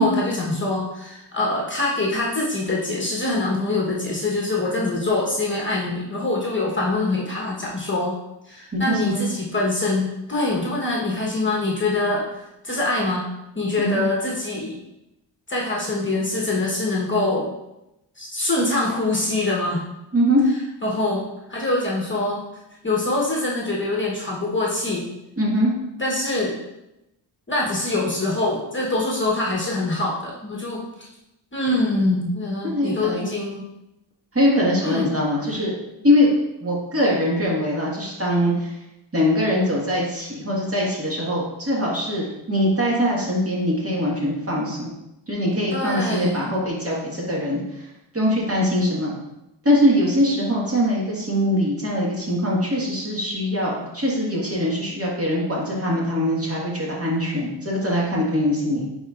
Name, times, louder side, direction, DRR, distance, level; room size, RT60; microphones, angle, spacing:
voice 1, 0.0-8.1 8.4-13.2 13.5-14.8 15.5-17.5 18.2-19.8 20.8-22.4 22.8-25.1 26.0-26.6 27.5-30.8 31.5-33.7 34.8-35.1 45.7-46.5, left 2 dB, 25° left, -3 dB, 1.1 m, -24 dB
voice 2, 8.7-9.2 13.8-14.0 20.1-20.4 25.4-25.7 32.6-33.3 34.3-35.7 36.0-36.3 36.6-38.7 39.1-44.9 45.3-47.6 48.1-49.2 49.6-58.8, equal, 30° right, -5 dB, 1.6 m, -22 dB
9.4 x 4.1 x 2.4 m, 0.91 s
wide cardioid pair, 165°, 44 cm